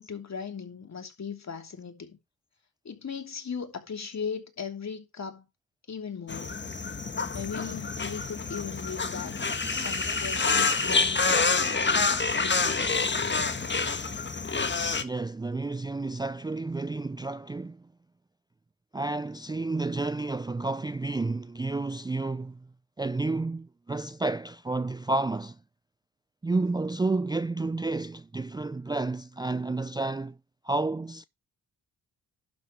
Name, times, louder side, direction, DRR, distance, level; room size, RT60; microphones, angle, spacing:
voice 1, 0.0-2.2 2.8-5.5 5.9-6.6 7.3-9.3 9.7-13.1, left 6 dB, 50° left, 2.9 m, -38 dB
sound 1, 6.3-15.0, left 4 dB, 30° left, 1.6 m, -27 dB
voice 2, 15.0-17.8 18.9-22.6 23.0-25.6 26.4-30.4 30.6-31.2, right 3 dB, 10° right, 0.4 m, -30 dB
11.5 x 4.6 x 5.5 m
supercardioid pair, 55°, 35 cm